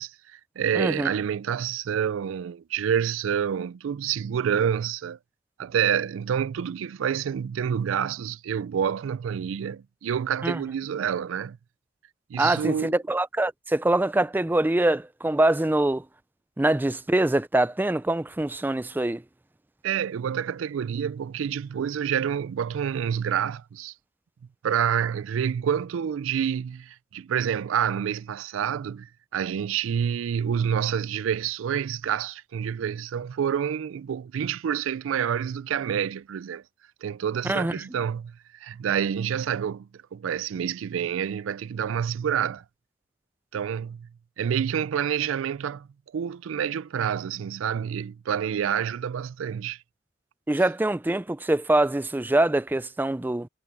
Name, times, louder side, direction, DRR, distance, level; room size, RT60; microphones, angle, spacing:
voice 1, 0.0-5.2 5.6-11.6 12.3-13.0 19.8-23.9 24.6-36.6 37.0-42.6 43.5-44.1 44.4-49.8, right 8 dB, 85° right, 0.3 m, -28 dB
voice 2, 0.8-1.1 10.4-10.6 12.4-16.0 16.6-19.2 37.4-37.7 50.5-53.5, right 1 dB, 10° right, 0.3 m, -24 dB
head